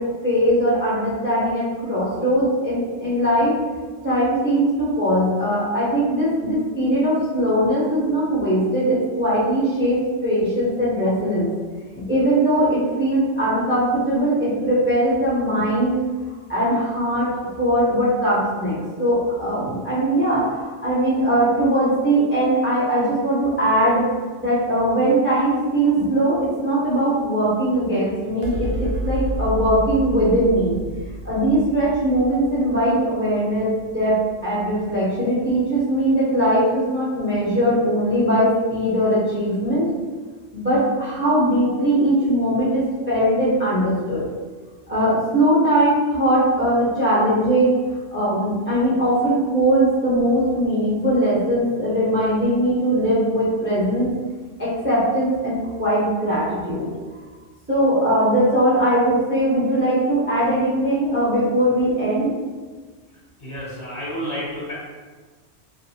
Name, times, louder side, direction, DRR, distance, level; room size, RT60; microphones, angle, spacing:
voice 1, 0.0-3.5 4.0-11.5 12.0-16.0 16.5-17.3 17.6-24.0 24.4-30.8 31.2-34.2 34.4-39.9 40.5-44.2 44.9-47.8 48.1-54.1 54.6-56.9 57.7-62.3, right 1 dB, 15° right, -8 dB, 0.5 m, -20 dB
sound 1, 28.4-35.1, equal, 65° right, 0.7 m, -31 dB
voice 2, 63.4-64.7, equal, 45° left, -9 dB, 0.8 m, -30 dB
2.6 x 2.3 x 2.7 m, 1.4 s
omnidirectional pair, 1.3 m